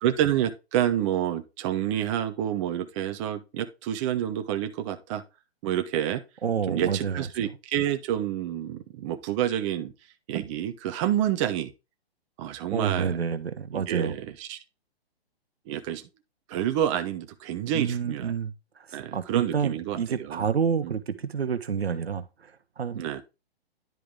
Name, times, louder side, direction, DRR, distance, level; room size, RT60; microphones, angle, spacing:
voice 1, 0.0-5.2 5.6-6.2 6.7-9.9 10.3-11.7 12.4-13.2 13.7-14.6 15.7-16.0 16.5-18.3 18.9-20.5 20.8-21.0 23.0-23.2, right 11 dB, 30° right, 0.9 m, -28 dB
voice 2, 6.4-7.5 12.7-14.1 17.7-18.5 18.9-22.5 22.8-23.0, right 7 dB, 75° right, 1.1 m, -29 dB
10.5 x 5.0 x 3.7 m
figure-of-eight pair, 130°, 31 cm